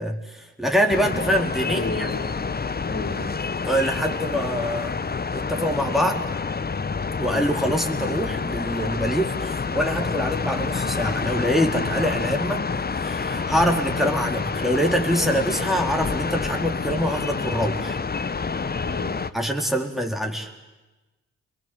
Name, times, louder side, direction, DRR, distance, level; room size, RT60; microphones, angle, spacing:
voice 1, 0.0-2.1 3.6-5.0 5.3-6.3 7.2-12.7 13.0-18.0 19.3-20.5, equal, ahead, 1 dB, 4.1 m, -25 dB
sound 1, 0.9-19.3, left 5 dB, 25° left, 1.0 m, -28 dB
voice 2, 1.6-2.3 2.8-3.4 18.8-19.2, left 2 dB, 45° left, -1 dB, 4.4 m, -32 dB
27.5 x 22.5 x 7.9 m, 1.1 s
hypercardioid pair, 45°, 34 cm